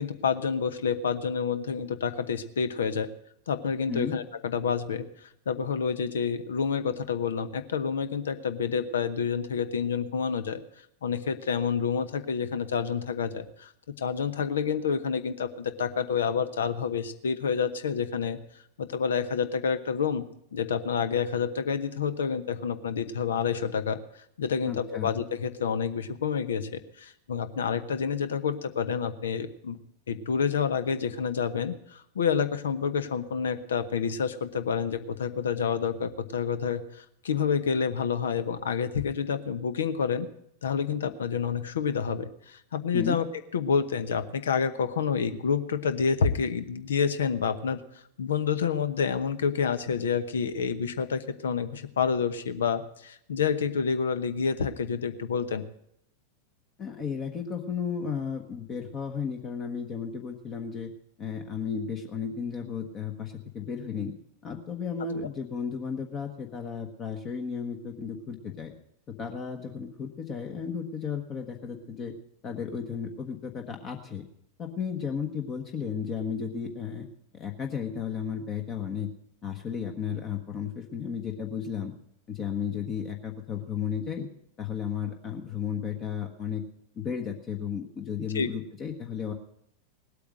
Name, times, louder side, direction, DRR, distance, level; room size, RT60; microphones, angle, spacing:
voice 1, 0.0-3.1 3.5-5.0 5.5-10.6 11.0-13.7 14.0-18.4 18.8-24.0 24.4-29.8 30.1-40.3 40.6-43.3 43.5-47.8 48.2-55.6 88.3-88.5, left 6 dB, 65° left, 12 dB, 1.0 m, -28 dB
voice 2, 24.6-25.1 42.9-43.2 56.8-60.9 61.2-64.1 64.4-68.7 69.1-72.1 72.4-74.2 74.6-77.1 77.3-79.1 79.4-81.9 82.3-84.3 84.6-86.6 87.0-89.3, left 7 dB, 30° left, 3 dB, 1.3 m, -34 dB
18.5 x 8.5 x 6.4 m, 0.74 s
figure-of-eight pair, 90°, 0 cm